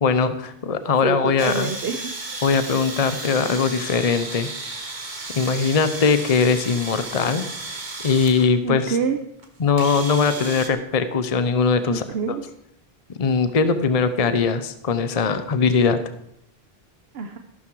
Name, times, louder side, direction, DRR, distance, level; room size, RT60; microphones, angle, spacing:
voice 1, 0.0-1.7 2.4-4.9 5.3-9.0 9.6-12.4 13.2-16.0, left 5 dB, 40° left, 11 dB, 0.8 m, -21 dB
voice 2, 1.0-2.4 8.6-9.2 11.9-12.4 17.1-17.4, right 5 dB, 80° right, 6 dB, 1.1 m, -27 dB
sound 1, 1.4-8.5 9.4-9.5 9.8-10.7, right 3 dB, 50° right, 1.7 m, -34 dB
14.0 x 12.0 x 4.7 m, 0.74 s
omnidirectional pair, 1.0 m